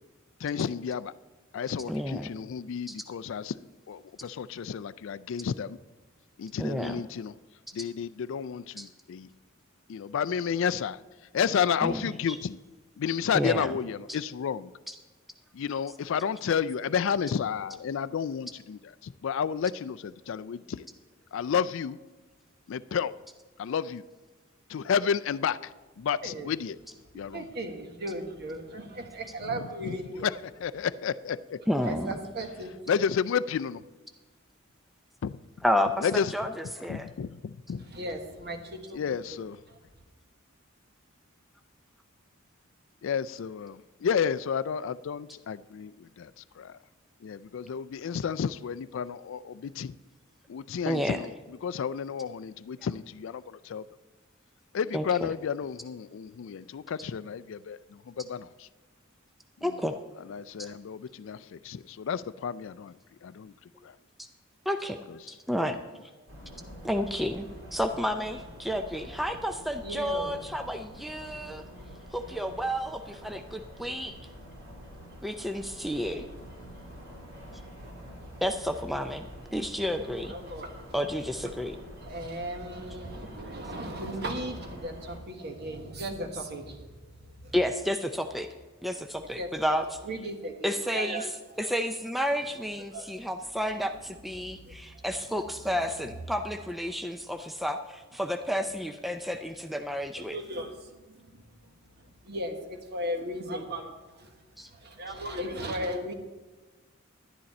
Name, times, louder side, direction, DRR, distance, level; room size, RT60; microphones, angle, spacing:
voice 1, 0.4-1.1 1.5-3.6 3.9-5.8 6.4-7.3 7.7-9.3 9.9-11.0 11.3-12.6 13.0-14.7 15.5-20.9 21.3-22.0 22.7-23.1 23.6-24.0 24.7-25.7 26.0-26.8 27.1-27.5 29.5-31.6 32.9-33.8 35.2-35.4 36.0-36.3 36.9-37.9 38.9-39.6 43.0-46.3 46.6-46.8 47.2-50.0 50.5-51.3 51.6-53.8 54.7-58.7 59.6-59.8 60.3-62.9 63.2-63.5 63.8-64.0 65.6-65.7 66.4-66.5, left 7 dB, 65° left, 0.4 m, -31 dB
voice 2, 1.9-2.3 2.9-3.0 6.6-7.0 8.8-8.9 11.8-12.0 12.3-12.4 13.3-13.7 14.9-15.0 31.7-32.1 35.6-37.1 50.9-51.2 54.9-55.3 59.6-60.0 60.6-60.7 64.7-65.0 65.3-65.8 66.8-71.6 72.1-74.1 75.2-76.3 78.4-79.3 79.5-80.3 80.9-81.8 87.5-88.5 88.8-90.0 90.6-91.3 91.6-100.4 104.6-104.7, equal, ahead, 0.4 m, -31 dB
voice 3, 26.2-26.5 27.3-30.3 31.8-32.7 37.9-39.1 39.7-39.8 69.8-70.4 80.2-80.8 82.0-87.5 89.4-89.8 90.0-91.3 92.9-93.3 94.6-94.7 100.3-101.2 102.2-104.3 104.7-106.1, right 1 dB, 55° right, 1.3 m, -37 dB
sound 1, 66.3-85.2, equal, 75° right, 3.2 m, -46 dB
11.0 x 10.5 x 4.2 m
head